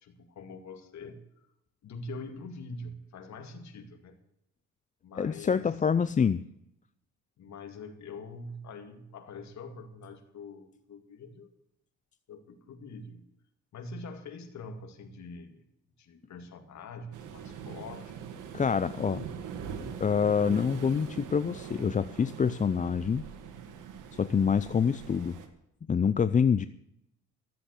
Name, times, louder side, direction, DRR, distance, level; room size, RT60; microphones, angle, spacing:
voice 1, 0.0-1.2 1.8-4.2 5.0-5.7 7.4-11.5 12.3-13.3 13.7-15.6 16.0-18.1, left 3 dB, 65° left, 6 dB, 2.3 m, -44 dB
voice 2, 5.2-6.4 18.5-19.2 20.0-23.2 24.1-25.4 25.9-26.7, left 6 dB, 25° left, 14 dB, 0.5 m, -26 dB
Waves surf, 17.1-25.5, right 7 dB, 85° right, 1.9 m, -42 dB
14.0 x 7.9 x 8.3 m, 0.78 s
cardioid pair, 90°, 30 cm